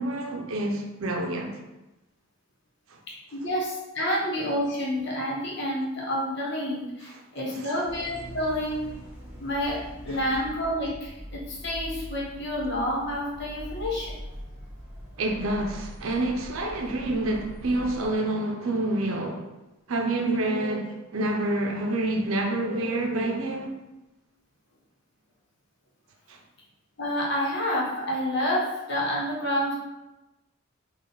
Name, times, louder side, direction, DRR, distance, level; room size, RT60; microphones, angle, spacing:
voice 1, 0.0-1.6 2.9-3.0 7.4-7.7 10.1-10.2 15.2-19.5 19.9-23.8 26.3-26.4, right 2 dB, 80° right, 0.6 m, -28 dB
voice 2, 3.3-8.8 9.4-14.1 27.0-29.7, equal, 55° left, 1.0 m, -29 dB
sound 1, 7.8-18.1, equal, 5° right, 1.0 m, -42 dB
4.1 x 2.4 x 3.8 m
head